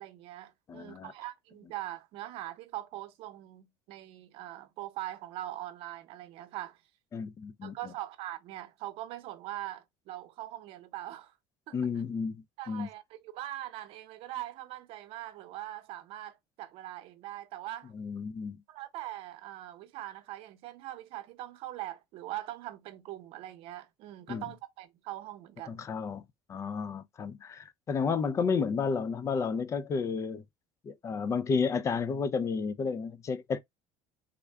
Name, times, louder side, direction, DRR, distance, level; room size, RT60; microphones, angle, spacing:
voice 1, 0.0-6.8 7.6-11.3 11.7-11.9 12.6-17.9 18.7-25.8, right 14 dB, 65° right, 0.7 m, -42 dB
voice 2, 0.7-1.1 7.1-7.8 11.7-12.9 17.9-18.6 24.3-24.4 25.7-26.2 26.5-30.4 30.9-33.6, left 5 dB, 30° left, 0.3 m, -32 dB
3.6 x 2.2 x 3.3 m
cardioid pair, 125°, 10 cm